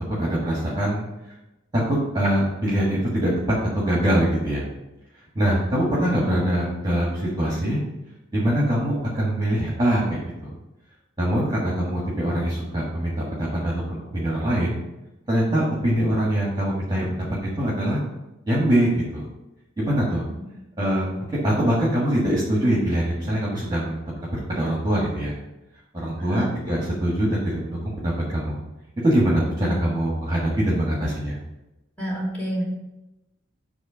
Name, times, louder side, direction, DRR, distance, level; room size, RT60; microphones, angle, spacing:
voice 1, 0.1-1.3 1.7-4.6 5.3-7.8 8.3-10.5 11.2-14.8 15.3-18.0 18.5-19.3 19.8-20.2 20.8-25.3 25.9-28.6 29.0-31.4, right 1 dB, 20° right, -5 dB, 1.4 m, -23 dB
voice 2, 32.0-32.6, equal, 10° left, -5 dB, 2.7 m, -28 dB
7.7 x 3.1 x 6.1 m, 0.96 s
head